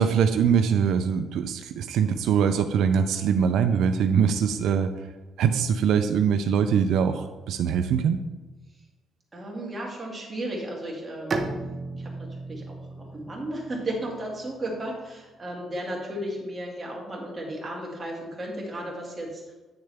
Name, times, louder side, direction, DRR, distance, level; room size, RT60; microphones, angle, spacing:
voice 1, 0.0-4.9 5.4-8.2, right 7 dB, 80° right, 8 dB, 0.4 m, -23 dB
voice 2, 9.3-11.4 11.9-19.5, right 1 dB, 15° right, -3 dB, 2.2 m, -34 dB
Bowed string instrument, 11.3-14.9, right 3 dB, 30° right, 0.7 m, -35 dB
9.0 x 6.6 x 3.4 m, 1.2 s
cardioid pair, 145°, 0 cm